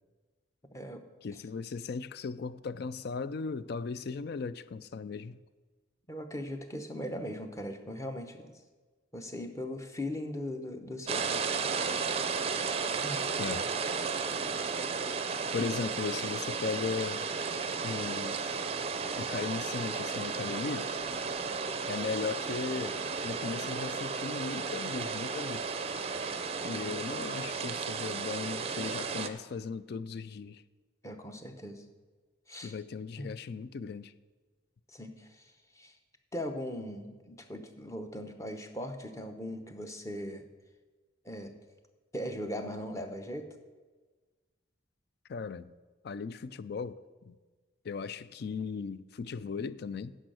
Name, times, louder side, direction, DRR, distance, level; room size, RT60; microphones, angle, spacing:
voice 1, 0.7-1.0 6.1-8.5 9.1-11.4 13.0-13.2 26.6-27.0 31.0-31.8 32.5-32.7 33.2-33.3 34.9-35.9 36.3-40.4 41.2-41.5 42.1-43.5, left 1 dB, 15° left, 0.8 m, -39 dB
voice 2, 1.2-5.4 13.4-13.7 15.5-17.3 17.8-18.4 19.2-20.9 21.9-25.7 26.6-30.6 32.6-34.1 45.3-45.7 46.0-47.3 47.8-50.2, left 5 dB, 55° left, 0.4 m, -37 dB
sound 1, 11.1-29.3, right 5 dB, 30° right, 0.5 m, -34 dB
10.5 x 5.5 x 7.8 m
head